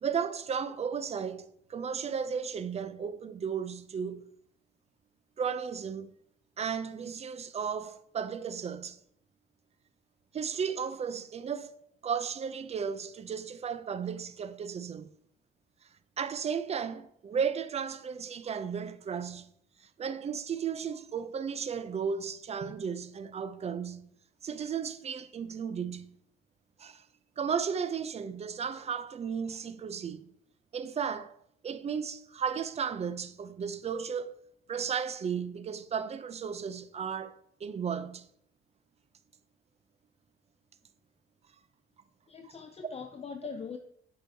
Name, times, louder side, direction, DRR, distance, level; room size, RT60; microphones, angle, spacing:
voice 1, 0.0-4.3 5.4-6.1 6.6-9.0 10.3-11.7 12.0-15.1 16.2-19.5 20.0-24.1 24.4-26.2 26.8-27.0 27.4-30.2 30.7-31.3 31.6-34.4 34.7-38.3, right 6 dB, 35° right, 0.4 m, -34 dB
voice 2, 42.3-43.8, left 6 dB, 30° left, 0.5 m, -41 dB
7.5 x 4.8 x 2.7 m
cardioid pair, 90°, 20 cm